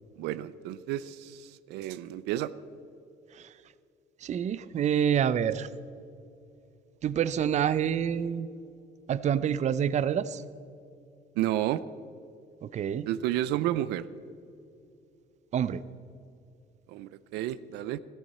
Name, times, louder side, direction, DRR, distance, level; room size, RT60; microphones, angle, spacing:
voice 1, 0.2-2.5 11.4-11.8 13.1-14.1 16.9-18.0, right 13 dB, 90° right, 15 dB, 0.5 m, -31 dB
voice 2, 4.2-5.7 7.0-8.5 9.1-10.4 12.6-13.1 15.5-15.8, right 9 dB, 45° right, 15 dB, 0.5 m, -27 dB
14.5 x 14.0 x 4.2 m, 2.6 s
cardioid pair, 110°, 17 cm